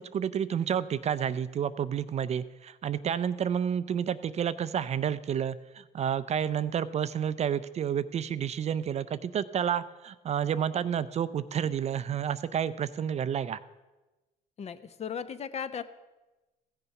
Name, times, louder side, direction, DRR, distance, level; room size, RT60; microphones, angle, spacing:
voice 1, 0.0-13.6, right 8 dB, 40° right, 15 dB, 0.4 m, -30 dB
voice 2, 14.6-15.8, left 7 dB, 40° left, 13 dB, 0.7 m, -36 dB
15.5 x 6.9 x 5.8 m, 1.1 s
cardioid pair, 110°, 17 cm